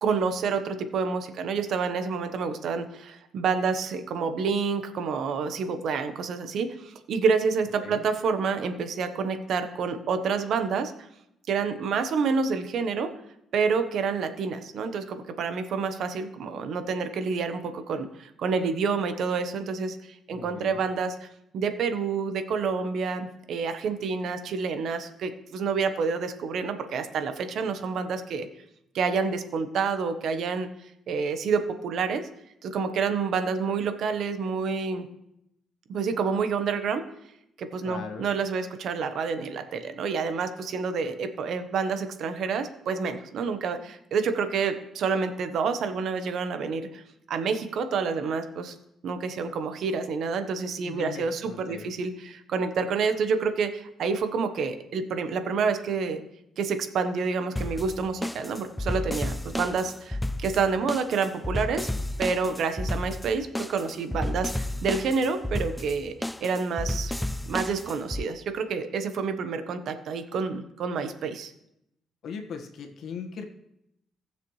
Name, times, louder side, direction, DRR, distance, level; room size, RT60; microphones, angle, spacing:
voice 1, 0.0-10.9 11.5-13.1 13.5-21.3 21.5-28.5 28.9-30.7 31.1-32.3 32.6-35.1 35.9-37.0 37.6-47.0 47.3-48.7 49.0-56.2 56.6-61.9 62.2-66.1 66.4-67.1 67.5-71.5, right 5 dB, 70° right, 8 dB, 1.1 m, -28 dB
voice 2, 20.3-20.8 37.8-38.3 50.8-51.9 72.2-73.4, left 5 dB, 70° left, 4 dB, 1.5 m, -39 dB
sound 1, 57.6-68.2, left 1 dB, 5° left, 0.3 m, -32 dB
18.5 x 6.7 x 3.2 m, 0.80 s
cardioid pair, 90°, 0 cm